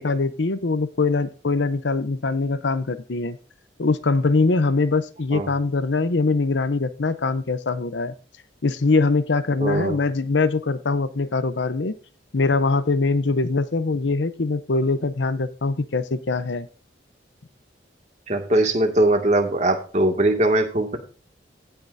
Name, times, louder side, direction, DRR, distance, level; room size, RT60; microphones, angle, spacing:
voice 1, 0.0-3.4 3.8-8.1 8.6-11.9 12.3-16.7, left 3 dB, 75° left, 13 dB, 0.7 m, -22 dB
voice 2, 9.6-10.0 18.3-21.0, right 1 dB, 40° right, 3 dB, 2.1 m, -20 dB
17.5 x 6.0 x 2.7 m, 0.37 s
head